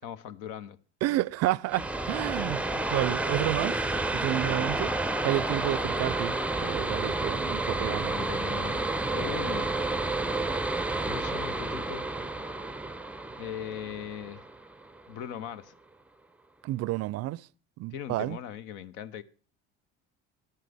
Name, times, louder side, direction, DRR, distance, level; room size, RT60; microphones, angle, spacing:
voice 1, 0.0-0.8 7.8-9.9 11.0-12.1 13.4-14.4 15.1-15.7 17.9-19.2, left 9 dB, 70° left, 0.9 m, -39 dB
voice 2, 1.0-3.8 4.1-4.9 5.2-8.1 16.6-17.5 17.8-18.4, right 16 dB, 50° right, 0.5 m, -30 dB
sound 1, 1.7-15.1, right 2 dB, 5° right, 0.5 m, -30 dB
12.5 x 11.0 x 3.5 m
hypercardioid pair, 65°, 32 cm